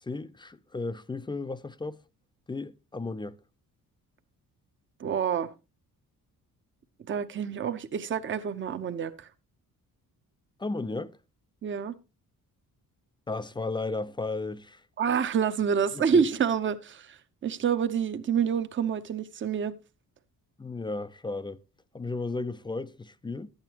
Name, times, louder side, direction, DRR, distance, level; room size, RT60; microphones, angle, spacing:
voice 1, 0.0-2.0 2.5-3.4 10.6-11.1 13.3-14.8 15.9-16.2 20.6-21.6 21.9-23.5, left 3 dB, 15° left, 0.4 m, -34 dB
voice 2, 5.0-5.5 7.1-9.3 11.6-11.9 15.0-19.7, right 7 dB, 35° right, 0.7 m, -28 dB
11.5 x 8.9 x 2.9 m
cardioid pair, 125°, 35 cm